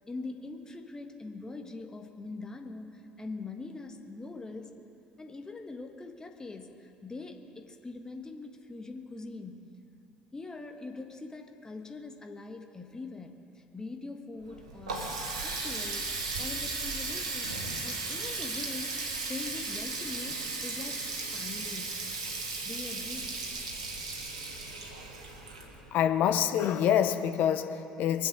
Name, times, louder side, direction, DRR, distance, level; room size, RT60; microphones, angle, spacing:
voice 1, 0.1-4.8 5.2-9.7 10.3-15.1 15.4-17.5 17.8-18.9 19.3-22.0 22.6-23.3, left 3 dB, 20° left, 1.5 m, -43 dB
Water tap faucet, 14.4-26.1, right 3 dB, 75° right, 1.6 m, -36 dB
voice 2, 25.9-28.3, left 9 dB, 55° left, 0.7 m, -26 dB
23.0 x 8.0 x 6.3 m
figure-of-eight pair, 55°, 4 cm